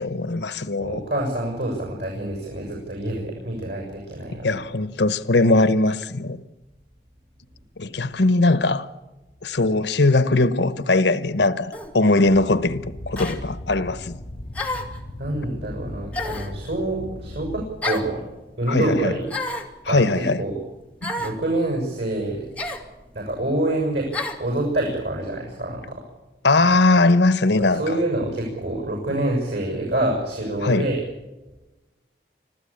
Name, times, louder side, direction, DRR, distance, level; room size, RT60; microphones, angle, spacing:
voice 1, 0.0-1.0 4.4-6.4 7.8-8.9 9.4-14.2 18.7-19.1 19.8-20.4 21.0-21.2 26.4-28.0 30.6-30.9, left 2 dB, 80° left, 1.0 m, -20 dB
voice 2, 0.8-4.6 14.6-14.8 15.2-18.3 18.6-19.3 19.9-20.5 21.2-22.5 23.1-24.1 24.4-26.0 27.7-31.0, right 1 dB, 90° right, 7.0 m, -26 dB
sound 1, 11.7-11.9 13.2-13.4 14.5-15.0 16.1-16.6 17.8-18.1 19.3-19.7 21.0-21.4 22.6-22.9 24.1-24.4, left 2 dB, 10° left, 2.2 m, -29 dB
sound 2, 12.3-17.7, left 1 dB, 40° left, 1.0 m, -37 dB
26.0 x 15.5 x 8.7 m
head